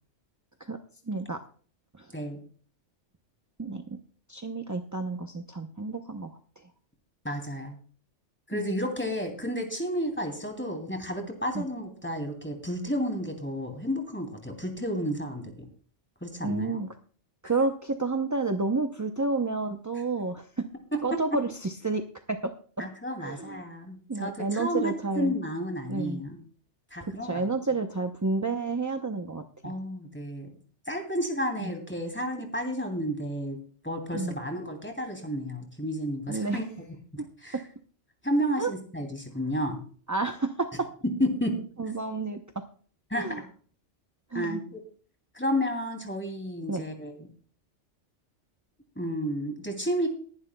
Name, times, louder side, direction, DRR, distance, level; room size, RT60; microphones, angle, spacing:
voice 1, 1.1-1.4 2.0-2.1 3.6-4.0 4.3-6.3 8.5-8.7 11.5-11.6 16.4-16.9 17.4-20.6 21.0-22.0 22.3-22.5 23.2-23.6 24.1-25.3 25.9-26.2 27.2-29.7 31.6-31.7 34.1-34.4 36.3-36.6 38.6-38.7 40.1-40.9 41.8-42.4 43.1-43.4 44.3-44.6 46.7-46.8, right 3 dB, 20° right, 5 dB, 0.5 m, -30 dB
voice 2, 7.2-7.8 8.5-15.7 16.2-16.8 20.9-21.4 22.8-26.4 26.9-27.4 29.6-30.5 30.9-33.6 33.8-36.7 37.1-37.6 38.2-39.8 41.2-41.6 43.1-43.4 44.3-44.8 45.3-47.1 49.0-50.1, equal, 10° left, 3 dB, 2.7 m, -31 dB
20.5 x 11.0 x 2.2 m, 0.44 s
omnidirectional pair, 1.2 m